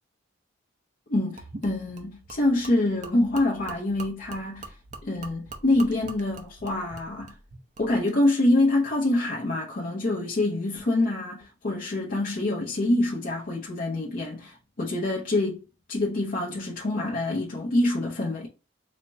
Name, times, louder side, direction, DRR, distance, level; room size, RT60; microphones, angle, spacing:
voice 1, 1.1-4.8 5.0-7.3 7.8-15.6 15.9-18.5, left 2 dB, 45° left, 0.6 m, -26 dB
Gurgling / Liquid, 1.4-8.2, right 3 dB, 35° right, 0.6 m, -44 dB
4.1 x 2.1 x 3.4 m
head